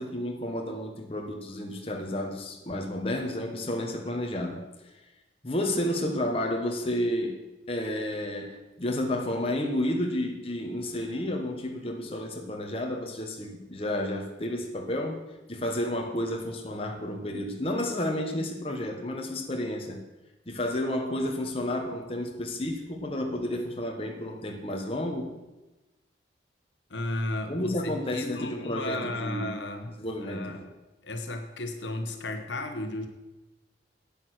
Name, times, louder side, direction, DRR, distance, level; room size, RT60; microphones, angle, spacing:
voice 1, 0.0-4.6 5.4-7.4 7.7-15.2 15.5-20.0 20.5-25.3 27.5-29.6 30.0-30.6, left 1 dB, 30° left, 2 dB, 1.3 m, -31 dB
voice 2, 26.9-30.7 31.0-33.1, left 1 dB, 85° left, 6 dB, 1.2 m, -34 dB
8.5 x 8.5 x 6.3 m, 1.1 s
head